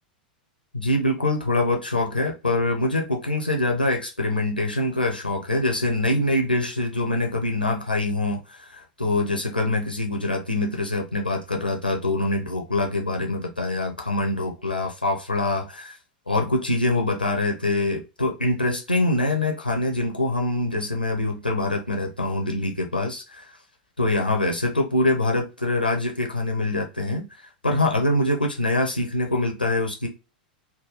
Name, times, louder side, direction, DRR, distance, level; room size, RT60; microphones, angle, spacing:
voice 1, 0.7-16.0 16.3-23.6 24.0-30.1, left 2 dB, 85° left, 2 dB, 0.6 m, -24 dB
3.6 x 2.3 x 3.0 m, 0.29 s
figure-of-eight pair, 90°, 5 cm